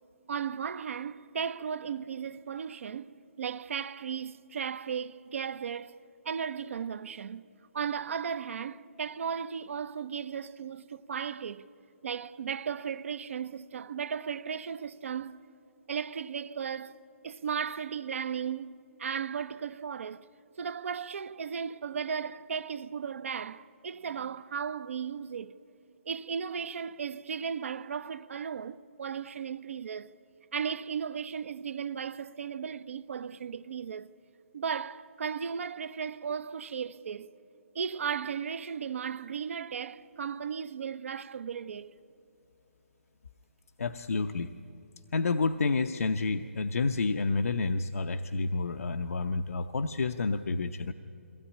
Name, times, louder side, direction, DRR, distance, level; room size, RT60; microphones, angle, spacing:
voice 1, 0.3-7.5 7.7-11.6 12.0-15.4 15.9-17.0 17.2-20.3 20.6-25.6 26.0-30.1 30.5-34.1 34.5-37.3 37.7-41.9, right 7 dB, 65° right, 0.7 m, -36 dB
voice 2, 43.8-44.5 45.1-50.9, left 3 dB, 85° left, 0.7 m, -29 dB
22.5 x 16.5 x 9.8 m
hypercardioid pair, 160°, 8 cm